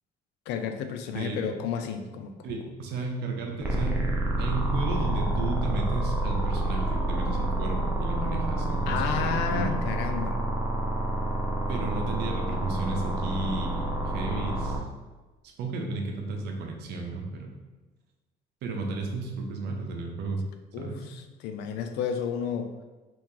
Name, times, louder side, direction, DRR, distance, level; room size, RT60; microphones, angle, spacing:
voice 1, 0.5-2.5 8.9-10.4 20.7-22.7, left 7 dB, 90° left, 7 dB, 0.4 m, -32 dB
voice 2, 2.4-4.0 4.4-9.8 11.7-14.8 15.6-17.5 18.6-20.4 20.8-21.0, right 3 dB, 75° right, 2 dB, 0.7 m, -33 dB
sound 1, 3.6-14.8, right 1 dB, 10° right, 0.5 m, -28 dB
3.0 x 2.7 x 3.7 m, 1.2 s
cardioid pair, 110°, 17 cm